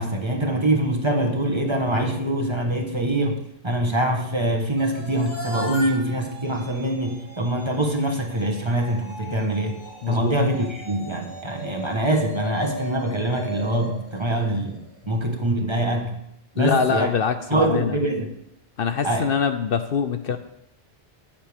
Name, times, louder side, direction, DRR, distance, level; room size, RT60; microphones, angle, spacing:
voice 1, 0.0-3.4 3.6-9.8 10.1-14.8 15.1-16.1 16.5-17.1 17.5-18.3 19.0-19.3, right 1 dB, 25° right, 1 dB, 1.3 m, -24 dB
sound 1, 4.8-15.0, equal, 10° left, 2.4 m, -37 dB
voice 2, 10.0-10.4 16.6-18.0 18.8-20.4, left 6 dB, 60° left, 8 dB, 0.8 m, -24 dB
14.5 x 8.8 x 3.6 m, 0.82 s
omnidirectional pair, 1.1 m